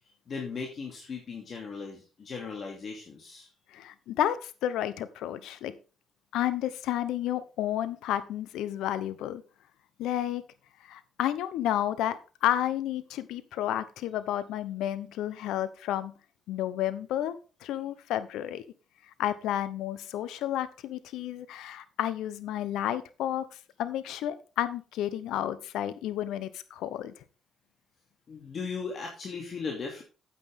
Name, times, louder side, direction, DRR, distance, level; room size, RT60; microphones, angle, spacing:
voice 1, 0.3-3.5 28.3-30.0, left 5 dB, 50° left, 0 dB, 2.5 m, -37 dB
voice 2, 3.7-5.7 6.3-9.4 10.0-10.4 10.8-16.1 16.5-18.6 19.2-23.4 23.8-27.1, left 12 dB, 90° left, 14 dB, 0.8 m, -31 dB
9.3 x 8.3 x 3.5 m, 0.34 s
cardioid pair, 90°, 0 cm